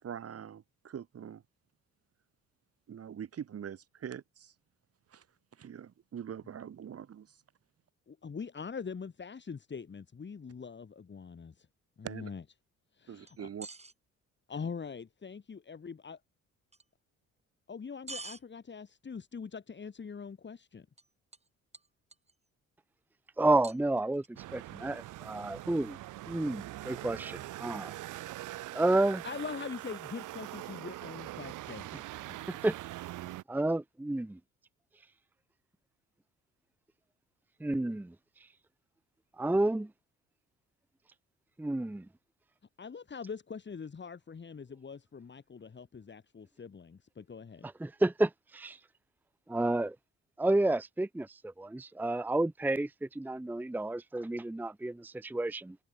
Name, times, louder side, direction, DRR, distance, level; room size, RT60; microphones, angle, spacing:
voice 1, 0.0-1.4 2.9-4.5 5.1-5.2 5.6-7.4 12.0-12.3 13.1-13.7, right 8 dB, 50° right, 2.2 m, -43 dB
voice 2, 8.1-11.7 12.0-12.4 12.9-13.5 14.5-16.2 17.7-20.9 29.2-31.9 42.8-47.7, left 5 dB, 35° left, 4.4 m, -43 dB
sound 1, 13.3-13.9 16.7-16.8 18.1-18.4 21.0-21.1 21.3-21.5 21.7-22.3 23.6-24.3, right 3 dB, 20° right, 2.9 m, -45 dB
voice 3, 23.4-26.0 26.3-28.0 28.7-29.2 32.5-32.8 33.5-34.4 37.6-38.1 39.4-39.9 41.6-42.0 47.6-48.8 49.5-50.0 50.4-55.8, right 2 dB, 5° right, 0.7 m, -30 dB
sound 2, 24.4-33.4, right 16 dB, 90° right, 1.9 m, -43 dB
cardioid pair, 90°, 30 cm